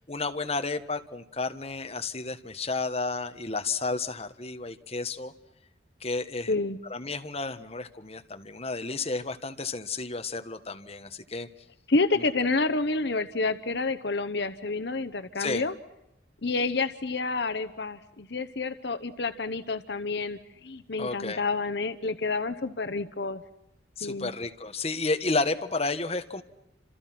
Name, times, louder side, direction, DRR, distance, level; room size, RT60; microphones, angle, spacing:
voice 1, 0.0-5.3 6.0-6.5 6.9-11.5 12.2-12.3 15.4-15.6 21.0-21.4 24.0-26.4, left 3 dB, 35° left, 7 dB, 1.5 m, -32 dB
voice 2, 6.5-6.8 11.9-15.7 16.4-23.4 24.0-24.3, left 3 dB, 65° left, 11 dB, 1.0 m, -29 dB
29.5 x 27.5 x 6.0 m, 0.86 s
head